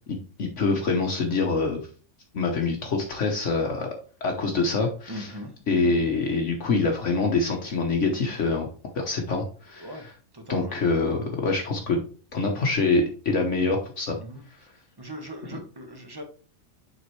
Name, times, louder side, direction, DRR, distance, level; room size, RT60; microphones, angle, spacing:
voice 1, 0.1-1.8 2.3-3.9 4.2-5.3 5.7-8.7 8.9-9.9 10.5-12.0 12.3-14.2, left 3 dB, 60° left, 2 dB, 1.3 m, -25 dB
voice 2, 5.1-5.5 5.8-6.1 9.8-10.1 10.3-10.8 14.2-14.5 15.0-16.2, equal, 15° right, 4 dB, 1.2 m, -39 dB
7.1 x 5.2 x 3.1 m, 0.39 s
omnidirectional pair, 1.5 m